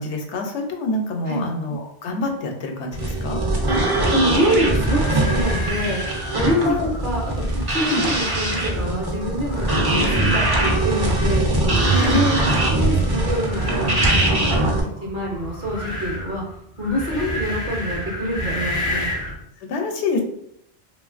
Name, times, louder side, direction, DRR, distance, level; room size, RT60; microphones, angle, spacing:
voice 1, 0.0-3.4 6.5-6.9 7.8-8.0 11.9-12.2 17.1-17.4 19.6-20.2, left 3 dB, 85° left, 3 dB, 0.9 m, -26 dB
sound 1, 2.9-14.8, right 2 dB, 35° right, 0.4 m, -21 dB
sound 2, 3.9-19.4, left 1 dB, 40° left, 0.5 m, -32 dB
voice 2, 4.1-6.0 6.3-6.8 7.0-11.5 11.9-14.7 15.0-16.4 16.8-19.0, equal, 55° right, -2 dB, 0.8 m, -26 dB
3.1 x 2.4 x 2.4 m, 0.76 s
omnidirectional pair, 1.1 m